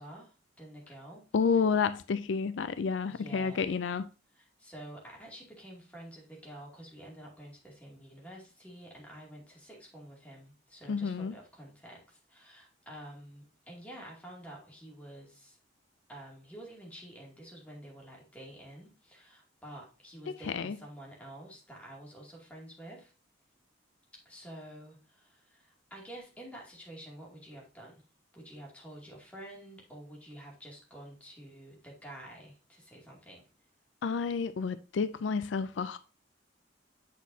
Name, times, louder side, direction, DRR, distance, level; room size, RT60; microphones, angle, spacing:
voice 1, 0.0-1.7 3.0-3.7 4.3-15.6 16.1-23.1 24.2-28.0 28.3-33.4, right 1 dB, 10° left, -3 dB, 2.4 m, -49 dB
voice 2, 1.3-4.1 10.9-11.3 20.5-20.8 34.0-36.0, left 5 dB, 70° left, 13 dB, 0.4 m, -30 dB
8.2 x 6.2 x 2.7 m, 0.34 s
head